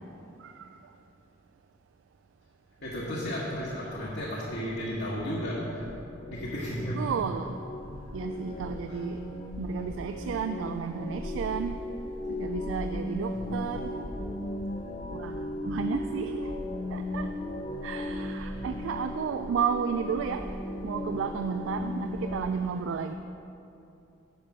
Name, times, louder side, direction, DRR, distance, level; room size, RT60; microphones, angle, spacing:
voice 1, 2.8-5.8 6.3-7.1 8.9-9.0 13.3-13.4 18.5-18.7, equal, 60° left, -7 dB, 1.3 m, -34 dB
sound 1, 3.6-22.5, left 1 dB, 40° left, 0.6 m, -37 dB
voice 2, 6.9-7.6 8.1-9.2 9.6-11.8 12.3-13.9 15.1-15.4 15.7-16.3 16.9-17.3 17.8-20.5 20.8-23.1, right 6 dB, 90° right, 8 dB, 0.3 m, -32 dB
10.0 x 5.7 x 4.8 m, 2.8 s
head